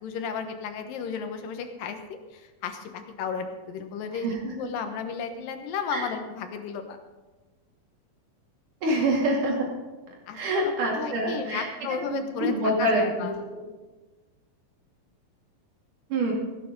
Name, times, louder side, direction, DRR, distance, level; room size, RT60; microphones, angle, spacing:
voice 1, 0.0-7.0 8.9-9.0 10.3-13.5, left 6 dB, 75° left, 7 dB, 2.9 m, -34 dB
voice 2, 8.8-9.7 10.3-11.7 12.1-13.6 16.1-16.3, right 1 dB, 60° right, -1 dB, 4.0 m, -26 dB
16.5 x 9.5 x 5.3 m, 1.2 s
omnidirectional pair, 4.1 m